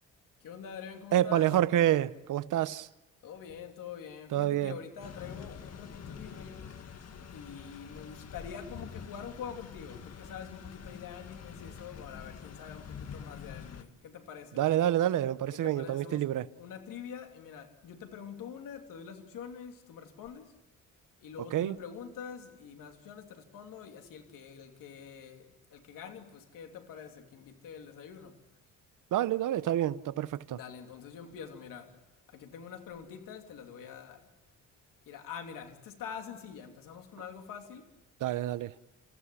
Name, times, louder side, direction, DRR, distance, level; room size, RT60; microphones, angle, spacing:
voice 1, 0.4-1.5 3.2-6.6 7.3-14.6 15.5-16.3 16.6-20.5 21.2-28.4 30.5-32.0 32.3-34.3 35.1-37.9, left 7 dB, 85° left, 3.1 m, -45 dB
voice 2, 1.1-2.9 4.3-4.8 14.6-16.5 21.5-21.8 29.1-30.6 38.2-38.7, right 12 dB, 75° right, 0.9 m, -28 dB
sound 1, 5.0-13.8, left 6 dB, 50° left, 1.8 m, -46 dB
29.0 x 15.5 x 9.9 m
cardioid pair, 110°, 32 cm